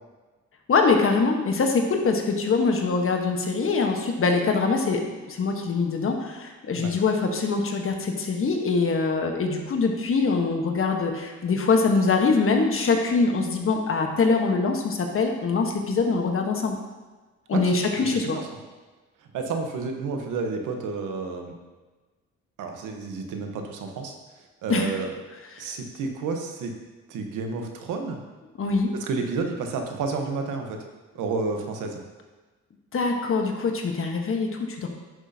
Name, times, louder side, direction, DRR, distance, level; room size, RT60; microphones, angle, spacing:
voice 1, 0.7-5.0 5.3-16.8 17.5-18.4 24.7-24.9 25.5-25.6 28.6-28.9 32.9-34.9, left 4 dB, 45° left, 3 dB, 1.2 m, -23 dB
voice 2, 17.5-18.3 19.3-21.5 22.6-24.1 24.6-25.1 25.6-26.7 27.1-28.2 29.0-30.8 31.1-32.0, right 4 dB, 85° right, 4 dB, 1.1 m, -30 dB
10.5 x 6.3 x 2.8 m, 1.3 s
cardioid pair, 90°, 30 cm